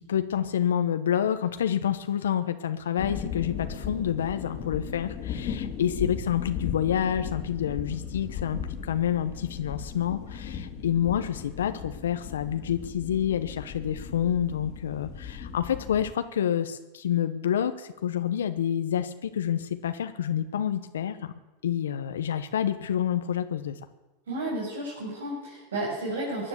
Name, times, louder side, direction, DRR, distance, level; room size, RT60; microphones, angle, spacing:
voice 1, 0.0-21.3 21.6-23.8, left 9 dB, 90° left, 9 dB, 0.9 m, -28 dB
sound 1, 3.0-16.1, left 7 dB, 45° left, 2.1 m, -37 dB
voice 2, 24.3-26.5, right 1 dB, 90° right, -6 dB, 6.3 m, -32 dB
16.5 x 9.9 x 8.1 m, 1.0 s
hypercardioid pair, 115°, 0 cm